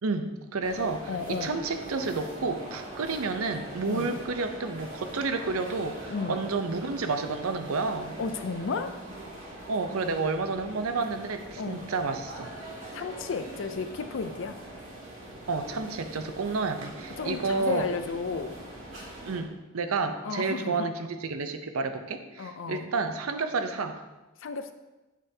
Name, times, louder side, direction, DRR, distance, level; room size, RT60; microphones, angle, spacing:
voice 1, 0.0-8.2 9.7-12.5 15.5-17.9 19.3-24.0, right 4 dB, 75° right, 8 dB, 0.6 m, -30 dB
sound 1, 0.6-19.4, right 1 dB, 60° right, 1.8 m, -42 dB
voice 2, 1.1-1.6 3.9-4.2 6.1-6.4 8.2-8.9 11.6-11.9 12.9-14.7 17.2-18.6 20.2-20.9 22.4-22.9 24.4-24.7, left 4 dB, 60° left, 9 dB, 0.4 m, -33 dB
7.4 x 6.7 x 2.8 m, 1.1 s
head